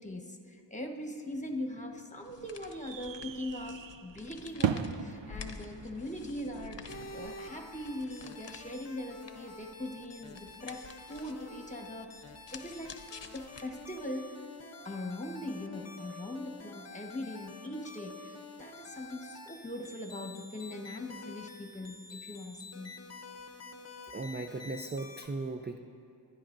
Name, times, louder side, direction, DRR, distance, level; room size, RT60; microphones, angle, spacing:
voice 1, 0.0-14.3 14.8-23.0, left 1 dB, 15° left, 2 dB, 1.3 m, -41 dB
sound 1, 1.3-7.3, right 8 dB, 80° right, 0.5 m, -39 dB
sound 2, 2.2-14.1, left 6 dB, 70° left, 0.7 m, -51 dB
sound 3, 6.9-25.3, left 3 dB, 35° left, 0.8 m, -49 dB
voice 2, 24.1-25.8, right 3 dB, 25° right, 5 dB, 0.4 m, -37 dB
24.5 x 10.0 x 2.6 m, 2.5 s
wide cardioid pair, 50°, 45 cm